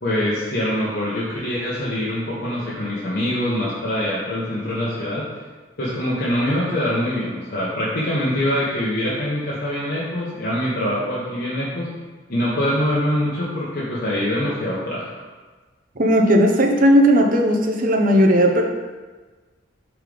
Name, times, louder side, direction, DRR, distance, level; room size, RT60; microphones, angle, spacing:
voice 1, 0.0-5.3 5.8-11.9 12.3-15.1, left 1 dB, 55° left, -8 dB, 1.1 m, -24 dB
voice 2, 16.0-18.6, equal, 45° right, 2 dB, 0.8 m, -16 dB
5.7 x 3.6 x 5.1 m, 1.3 s
head